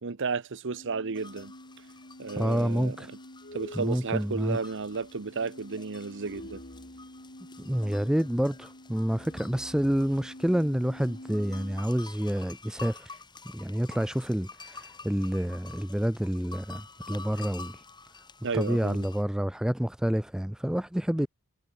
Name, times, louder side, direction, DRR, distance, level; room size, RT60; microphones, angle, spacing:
voice 1, 0.0-1.5 2.2-3.0 3.5-6.6 18.4-19.1 21.2-21.3, right 4 dB, 55° right, 0.9 m, -33 dB
sound 1, 0.7-11.9, left 1 dB, 40° left, 4.8 m, -47 dB
sound 2, 1.1-19.2, left 4 dB, 20° left, 2.8 m, -49 dB
voice 2, 2.4-3.1 3.7-4.6 7.6-13.2 13.5-17.8 18.5-21.3, equal, 5° right, 0.4 m, -28 dB
head